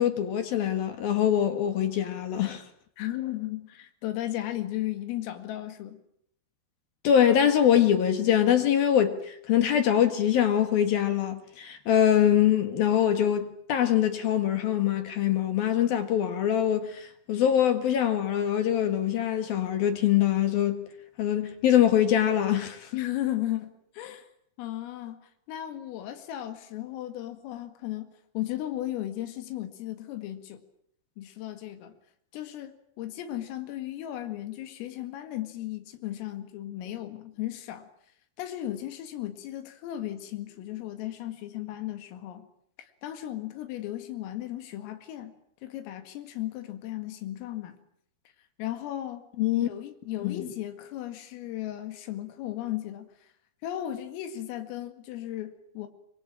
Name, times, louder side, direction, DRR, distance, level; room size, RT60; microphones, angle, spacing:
voice 1, 0.0-2.6 7.0-20.8 21.2-22.9 49.4-49.7 50.2-50.5, left 10 dB, 60° left, 2.9 m, -24 dB
voice 2, 3.0-6.0 22.9-24.3 24.6-25.2 25.5-30.6 31.2-32.0 32.3-37.9 38.4-42.5 42.8-45.3 45.6-47.8 48.6-49.3 49.6-53.3 53.6-55.9, left 13 dB, 85° left, 4.7 m, -35 dB
25.5 x 23.5 x 8.9 m
omnidirectional pair, 5.8 m